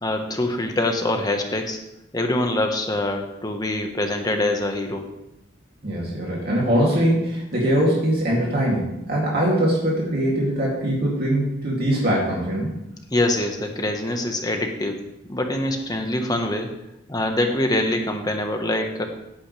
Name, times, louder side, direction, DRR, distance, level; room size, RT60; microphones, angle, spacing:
voice 1, 0.0-1.8 2.1-5.1 13.1-15.0 15.3-16.7 17.1-19.1, left 1 dB, 20° left, 4 dB, 1.3 m, -24 dB
voice 2, 5.8-12.7, right 1 dB, 55° right, -5 dB, 2.7 m, -22 dB
16.5 x 8.7 x 3.4 m, 0.90 s
head